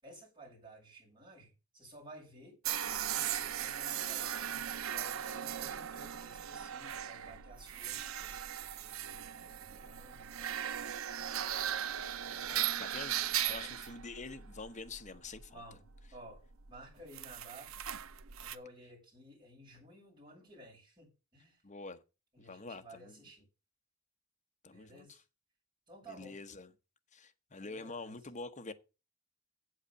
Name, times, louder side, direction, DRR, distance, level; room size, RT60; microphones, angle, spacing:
voice 1, 0.0-2.6 3.1-8.4 8.7-10.5 12.3-12.6 13.4-13.7 15.1-15.2 15.5-15.9 16.1-16.4 16.7-17.8 18.4-21.6 22.3-23.4 24.7-25.2 25.9-26.4 27.6-28.3, right 1 dB, 20° right, 6.8 m, -55 dB
sound 1, 2.6-18.6, right 10 dB, 80° right, 0.7 m, -38 dB
voice 2, 12.3-13.2 13.5-15.6 21.6-22.0 22.4-23.1 24.6-25.1 26.1-26.7 27.1-28.7, left 3 dB, 35° left, 1.0 m, -46 dB
8.1 x 8.0 x 6.8 m
head